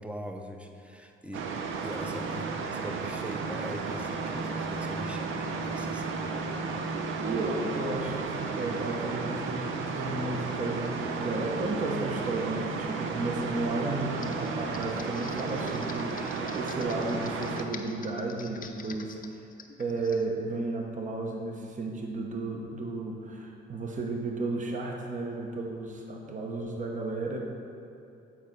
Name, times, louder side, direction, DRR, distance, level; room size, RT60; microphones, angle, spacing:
voice 1, 0.0-6.4, equal, 5° right, 4 dB, 0.7 m, -42 dB
sound 1, 1.3-17.6, right 4 dB, 80° right, 0.7 m, -33 dB
voice 2, 7.0-19.5 19.8-27.4, right 2 dB, 40° right, 1 dB, 0.9 m, -33 dB
Computer keyboard, 14.1-20.3, left 6 dB, 45° left, 0.6 m, -46 dB
8.6 x 4.5 x 5.3 m, 2.7 s
cardioid pair, 90°, 20 cm